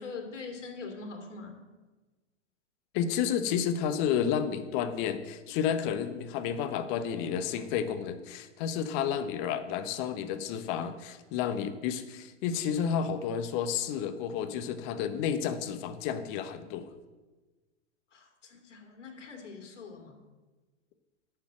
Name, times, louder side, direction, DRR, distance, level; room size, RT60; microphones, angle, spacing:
voice 1, 0.0-1.6 18.1-20.2, left 4 dB, 75° left, 3 dB, 2.7 m, -43 dB
voice 2, 2.9-16.9, left 8 dB, 40° left, 10 dB, 1.1 m, -31 dB
9.4 x 6.8 x 7.5 m, 1.2 s
hypercardioid pair, 120°, 36 cm